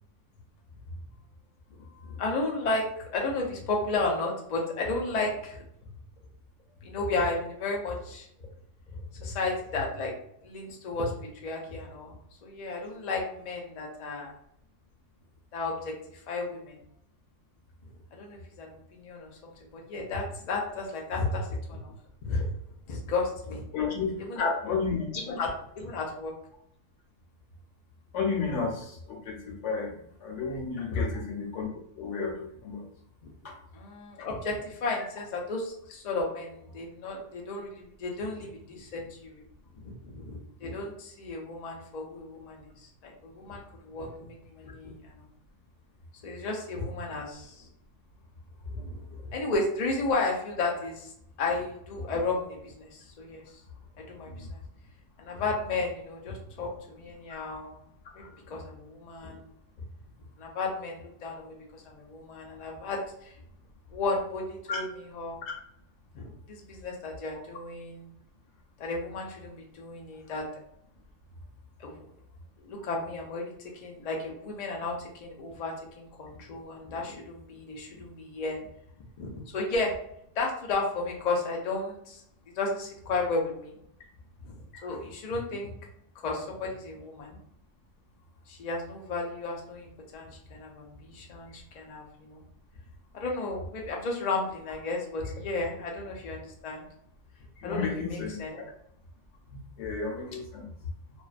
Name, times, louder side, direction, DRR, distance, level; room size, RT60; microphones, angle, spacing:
voice 1, 2.1-2.8 3.1-5.6 6.8-8.3 9.2-10.1 10.4-11.1 11.4-12.1 12.4-14.3 15.5-15.9 16.3-16.7 18.1-21.9 22.2-22.4 22.9-23.6 24.2-24.5 25.3-25.5 25.8-26.3 30.9-31.1 33.7-39.4 39.8-42.7 43.0-45.0 46.2-47.7 48.7-51.1 51.4-53.4 54.1-54.6 55.2-57.8 58.2-59.4 60.4-63.3 63.9-64.8 65.1-65.5 66.1-68.1 68.8-70.4 71.8-72.0 72.7-73.5 73.8-74.9 75.2-78.6 79.2-79.9 80.4-82.2 82.6-83.7 84.8-85.7 86.2-87.4 88.5-92.4 93.1-96.8 97.6-98.7, left 3 dB, 85° left, 0 dB, 0.3 m, -33 dB
voice 2, 23.7-24.1 24.6-25.1 28.1-29.9 30.2-31.7 32.0-32.8 33.4-33.5 64.7-64.8 72.8-72.9 97.6-98.4 99.8-100.7, left 5 dB, 65° left, 0 dB, 0.9 m, -32 dB
2.4 x 2.2 x 2.4 m, 0.72 s
omnidirectional pair, 1.4 m